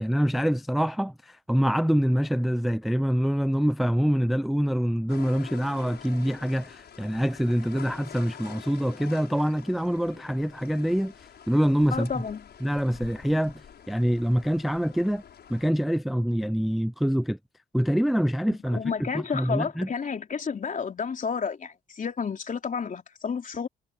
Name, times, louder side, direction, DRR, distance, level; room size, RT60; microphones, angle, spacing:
voice 1, 0.0-12.1 12.6-13.6 13.9-15.2 15.5-17.4 17.7-19.9, equal, ahead, 0.4 m, -25 dB
sound 1, 5.1-15.7, left 8 dB, 55° left, 6.4 m, -47 dB
voice 2, 11.9-12.4 18.7-23.7, left 6 dB, 40° left, 3.3 m, -31 dB
cardioid pair, 90°, 20 cm